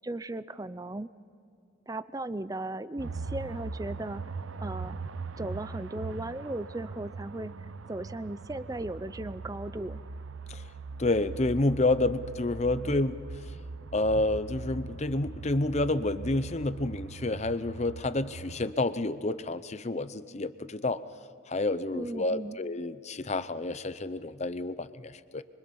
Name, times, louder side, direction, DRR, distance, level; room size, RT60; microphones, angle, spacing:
voice 1, 0.0-1.1 1.9-4.2 4.6-5.0 5.4-7.5 7.9-10.0 21.9-22.6, right 1 dB, 15° right, 14 dB, 0.5 m, -36 dB
sound 1, 3.0-18.7, right 4 dB, 75° right, 0.6 m, -40 dB
voice 2, 11.0-13.2 13.9-21.0 21.5-25.4, left 2 dB, 35° left, 13 dB, 0.7 m, -29 dB
25.0 x 24.5 x 5.5 m, 2.4 s
head